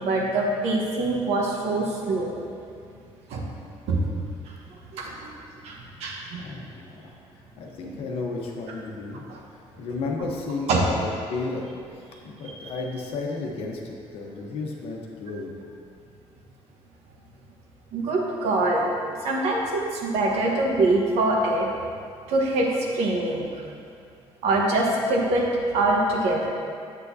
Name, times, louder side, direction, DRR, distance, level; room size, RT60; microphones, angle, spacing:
voice 1, 0.0-2.4 3.3-3.4 3.9-4.0 4.9-5.3 5.6-6.4 9.3-9.4 10.7-10.8 12.4-12.7 17.9-18.9 19.2-21.7 22.3-23.5 24.4-25.5 25.7-26.5, right 2 dB, 90° right, -1 dB, 1.2 m, -24 dB
voice 2, 6.3-7.1 7.6-9.2 9.5-11.6 12.0-15.5, left 3 dB, 65° left, 0 dB, 1.0 m, -33 dB
8.3 x 8.0 x 2.8 m, 2.3 s
cardioid pair, 180°, 11 cm